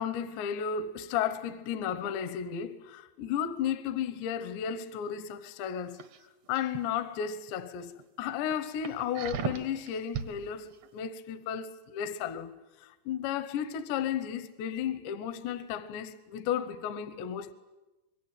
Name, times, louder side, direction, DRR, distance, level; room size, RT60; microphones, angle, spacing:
voice 1, 0.0-6.0 6.5-7.9 8.2-12.5 12.8-17.5, left 8 dB, 80° left, 3.2 m, -33 dB
sound 1, 5.9-6.8 7.3-7.5 8.0-8.1 8.5-10.3 10.7-10.9, right 7 dB, 75° right, 1.5 m, -37 dB
26.5 x 22.0 x 9.0 m
omnidirectional pair, 5.2 m